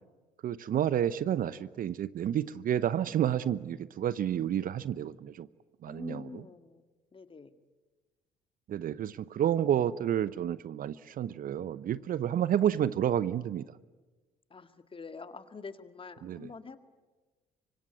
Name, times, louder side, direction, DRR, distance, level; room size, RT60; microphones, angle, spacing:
voice 1, 0.4-5.5 5.8-6.2 8.7-13.6 16.2-16.5, right 10 dB, 50° right, 18 dB, 0.8 m, -30 dB
voice 2, 5.8-7.6 14.5-16.8, left 4 dB, 30° left, 10 dB, 2.0 m, -46 dB
25.0 x 24.5 x 9.6 m, 1.2 s
hypercardioid pair, 55°, 19 cm